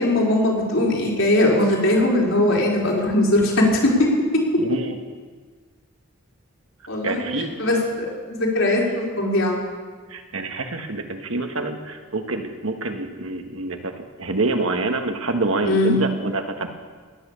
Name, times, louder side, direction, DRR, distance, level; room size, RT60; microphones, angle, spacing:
voice 1, 0.0-4.1 6.9-7.2 7.6-9.6 15.7-16.0, left 1 dB, 70° left, -3 dB, 4.2 m, -20 dB
voice 2, 4.6-5.0 7.0-7.6 10.1-16.7, right 2 dB, 80° right, 5 dB, 1.5 m, -26 dB
17.5 x 10.5 x 7.0 m, 1.5 s
head